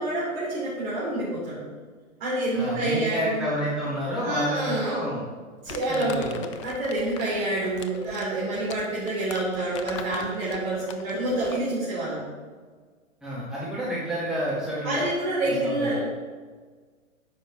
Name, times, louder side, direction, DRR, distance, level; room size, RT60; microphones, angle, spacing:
voice 1, 0.0-1.6 2.2-3.4 4.2-5.1 5.6-12.2 14.8-16.0, right 1 dB, 45° right, -7 dB, 3.3 m, -27 dB
voice 2, 2.5-5.2 5.9-6.3 13.2-14.9 15.6-16.0, equal, ahead, -8 dB, 1.8 m, -29 dB
Crumpling crinkling, 5.7-11.7, left 7 dB, 25° left, 0.4 m, -42 dB
9.5 x 5.8 x 5.9 m, 1.5 s
figure-of-eight pair, 110°, 42 cm